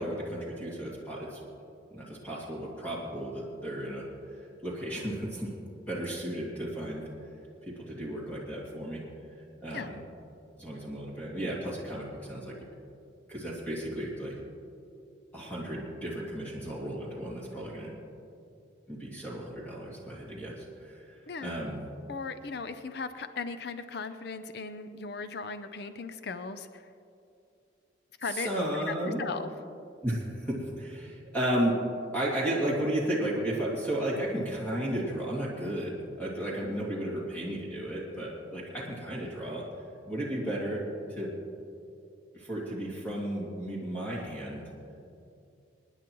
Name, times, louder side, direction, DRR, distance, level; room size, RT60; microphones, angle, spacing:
voice 1, 0.0-1.4 1.9-4.0 4.6-5.5 5.9-7.0 7.7-9.0 9.6-10.0 10.6-12.5 13.3-14.4 15.3-17.9 18.9-21.8 28.2-29.2 30.0-31.8 32.1-39.6 40.0-40.8 41.2-41.3 42.3-44.7, right 1 dB, 10° left, -6 dB, 2.3 m, -34 dB
voice 2, 22.1-26.8 28.2-28.5 28.9-29.5, left 4 dB, 55° left, 10 dB, 0.6 m, -37 dB
28.5 x 9.9 x 3.1 m, 2.6 s
head